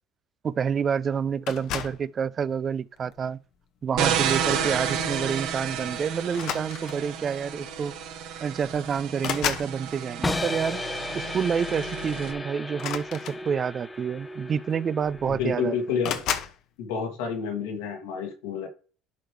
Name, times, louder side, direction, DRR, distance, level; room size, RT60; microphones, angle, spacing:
voice 1, 0.4-3.4 3.8-8.0 8.4-10.8 11.1-16.1, right 7 dB, 40° right, 0.4 m, -28 dB
sound 1, 1.5-2.1 3.0-3.3 4.8-4.9 5.2-5.4 6.3-7.2 8.2-8.3 8.6-9.8 12.7-13.8 14.7-14.8 15.0-15.5 16.0-16.6, left 9 dB, 65° left, 1.0 m, -32 dB
sound 2, 4.0-12.3, right 8 dB, 75° right, 1.3 m, -31 dB
sound 3, 10.2-16.2, left 2 dB, 20° left, 0.8 m, -35 dB
voice 2, 15.3-16.3 16.8-18.7, left 6 dB, 80° left, 2.2 m, -29 dB
11.5 x 4.6 x 3.3 m
hypercardioid pair, 70°, 0 cm